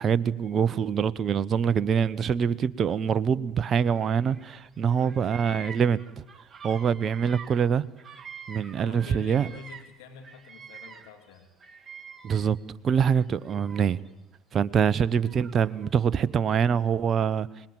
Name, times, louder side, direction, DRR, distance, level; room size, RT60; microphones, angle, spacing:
voice 1, 0.0-6.2 6.6-7.8 8.5-9.5 12.2-12.6 12.8-14.0 14.5-17.5, right 7 dB, 40° right, 1.0 m, -24 dB
Bird vocalization bird call bird song, 3.8-4.6 4.9-10.0 10.2-12.6 13.1-14.1 14.8-15.9, right 5 dB, 25° right, 2.8 m, -46 dB
voice 2, 4.8-5.2 8.8-11.5, left 7 dB, 75° left, 3.0 m, -46 dB
25.5 x 20.5 x 8.9 m
hypercardioid pair, 70°, 0 cm